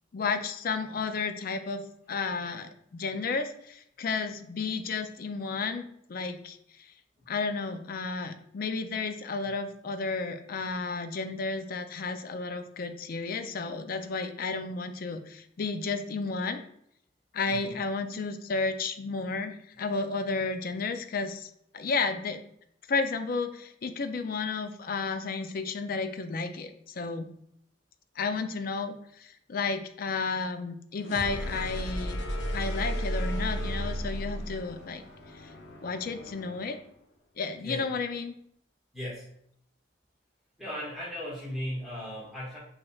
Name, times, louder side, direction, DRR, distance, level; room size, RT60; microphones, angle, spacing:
voice 1, 0.1-6.6 7.3-16.6 17.3-22.4 22.9-27.3 28.2-32.2 32.5-35.0 35.8-36.8 37.4-38.3, left 4 dB, 55° left, 8 dB, 0.4 m, -32 dB
sound 1, 31.0-36.8, equal, 80° left, 0.7 m, -34 dB
voice 2, 38.9-39.3 40.6-42.6, equal, ahead, -9 dB, 1.7 m, -37 dB
6.2 x 3.2 x 2.4 m, 0.70 s
head